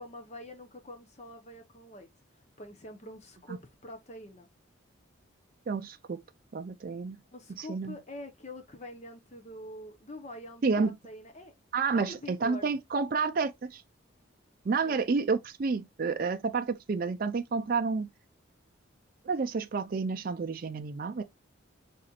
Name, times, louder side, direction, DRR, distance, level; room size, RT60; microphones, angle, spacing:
voice 1, 0.0-2.1 2.6-4.5 7.3-11.5 11.9-12.7 14.8-15.0, left 1 dB, 35° left, 0.8 m, -45 dB
voice 2, 5.7-6.2 6.5-7.2 7.5-8.0 10.6-10.9 11.7-13.8 14.6-18.1 19.2-21.2, right 4 dB, 45° right, 0.4 m, -30 dB
4.2 x 4.1 x 2.4 m
head